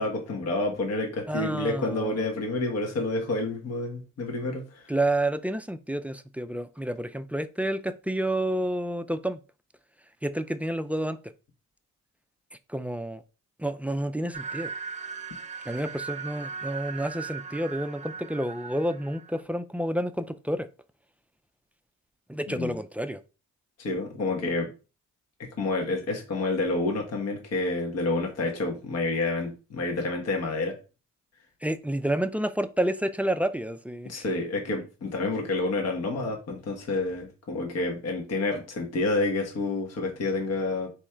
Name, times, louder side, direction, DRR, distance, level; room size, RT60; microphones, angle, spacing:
voice 1, 0.0-4.9 22.5-22.8 23.8-24.7 25.4-30.8 34.0-40.9, left 2 dB, 55° left, 1.3 m, -29 dB
voice 2, 1.3-2.2 4.9-9.4 10.2-11.2 12.7-13.2 13.6-14.7 15.6-20.7 22.3-23.2 31.6-34.2, right 1 dB, 5° right, 0.3 m, -29 dB
sound 1, 14.3-19.4, right 6 dB, 25° right, 0.9 m, -38 dB
3.6 x 3.1 x 4.4 m
cardioid pair, 90°, 30 cm